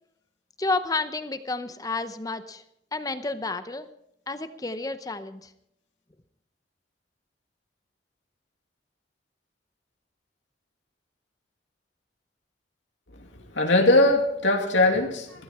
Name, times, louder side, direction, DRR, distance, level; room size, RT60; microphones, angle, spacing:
voice 1, 0.6-2.6 2.9-3.9 4.3-5.5, left 3 dB, 20° left, 11 dB, 0.7 m, -30 dB
voice 2, 13.1-15.4, left 2 dB, 85° left, 2 dB, 2.5 m, -21 dB
16.0 x 14.5 x 4.3 m, 0.75 s
head